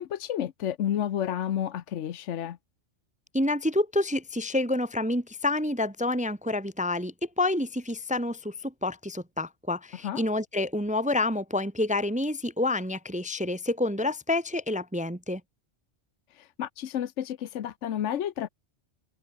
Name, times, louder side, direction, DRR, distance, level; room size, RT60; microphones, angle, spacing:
voice 1, 0.0-2.6 10.0-10.2 16.3-18.5, left 10 dB, 80° left, 1.1 m, -31 dB
voice 2, 3.3-15.4, left 2 dB, 10° right, 0.6 m, -28 dB
omnidirectional pair, 1.2 m